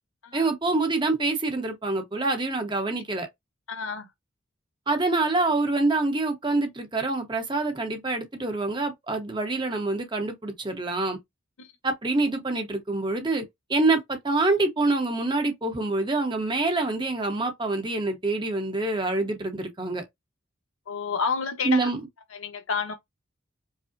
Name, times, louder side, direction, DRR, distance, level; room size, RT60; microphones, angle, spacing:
voice 1, 0.3-3.3 4.9-11.2 11.8-20.0 21.6-22.0, right 2 dB, 20° right, 0.8 m, -26 dB
voice 2, 3.7-4.1 11.6-11.7 20.9-21.9 22.3-22.9, left 5 dB, 90° left, 0.9 m, -30 dB
4.9 x 2.0 x 2.5 m
head